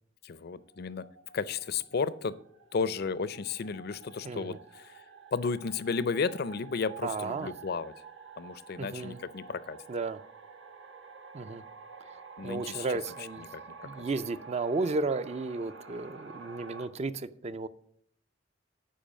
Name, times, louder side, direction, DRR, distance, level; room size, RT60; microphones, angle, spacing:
voice 1, 0.2-1.1 1.3-2.4 2.7-5.0 5.3-7.9 8.4-9.8 12.4-12.9 13.4-13.9, left 5 dB, 55° left, 16 dB, 0.5 m, -33 dB
sound 1, 0.6-16.9, right 5 dB, 85° right, 1.2 m, -50 dB
voice 2, 4.2-4.6 7.0-7.5 8.8-9.2 9.9-10.2 11.3-11.6 12.4-13.4 13.8-17.7, right 3 dB, 35° right, 14 dB, 0.5 m, -33 dB
10.5 x 4.8 x 7.3 m, 0.67 s
head